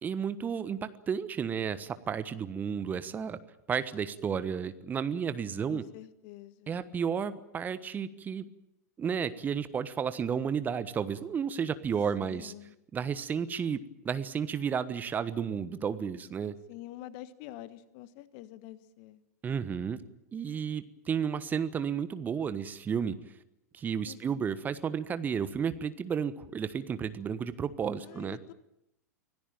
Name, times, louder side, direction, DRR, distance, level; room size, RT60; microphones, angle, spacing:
voice 1, 0.0-3.4 3.7-5.8 6.7-8.5 9.0-12.5 12.9-13.8 14.0-16.5 19.4-20.0 20.3-23.2 23.7-28.4, right 7 dB, 20° right, 13 dB, 1.3 m, -32 dB
voice 2, 5.7-6.8 12.2-12.8 16.7-19.2 24.0-24.5 28.0-28.5, left 14 dB, 45° left, 15 dB, 1.4 m, -47 dB
25.0 x 17.5 x 9.0 m, 0.83 s
figure-of-eight pair, 95°, 9 cm